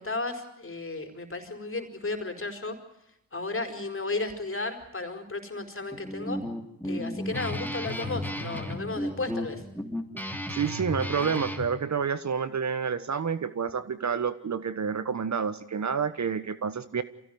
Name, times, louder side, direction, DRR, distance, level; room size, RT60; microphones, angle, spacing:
voice 1, 0.0-2.8 3.3-6.4 6.8-9.6, left 3 dB, 30° left, 6 dB, 4.9 m, -34 dB
Guitar, 5.9-11.7, left 1 dB, 5° left, 3.4 m, -34 dB
voice 2, 10.5-17.0, right 6 dB, 45° right, 13 dB, 1.3 m, -29 dB
24.0 x 16.0 x 9.6 m, 0.83 s
supercardioid pair, 50°, 40 cm